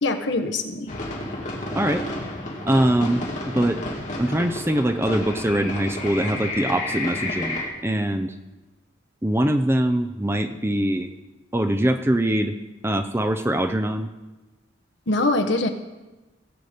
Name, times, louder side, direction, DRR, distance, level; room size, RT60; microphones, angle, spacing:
voice 1, 0.0-0.9 15.1-15.7, left 2 dB, 60° left, 7 dB, 1.1 m, -23 dB
sound 1, 0.9-7.7, left 2 dB, 35° left, 2.1 m, -31 dB
voice 2, 2.6-3.2 3.5-3.8 4.2-8.3 9.2-11.1 11.5-12.5 12.8-14.1, right 1 dB, 10° right, 8 dB, 0.5 m, -22 dB
17.0 x 7.9 x 5.1 m, 1.1 s
head